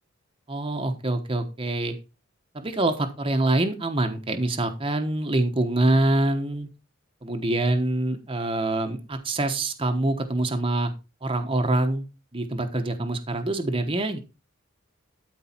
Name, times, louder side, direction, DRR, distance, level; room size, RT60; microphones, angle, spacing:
voice 1, 0.5-1.9 2.5-6.7 7.2-10.9 11.2-12.1 12.3-14.2, right 2 dB, 25° right, 5 dB, 1.0 m, -25 dB
12.5 x 4.6 x 4.4 m, 0.28 s
head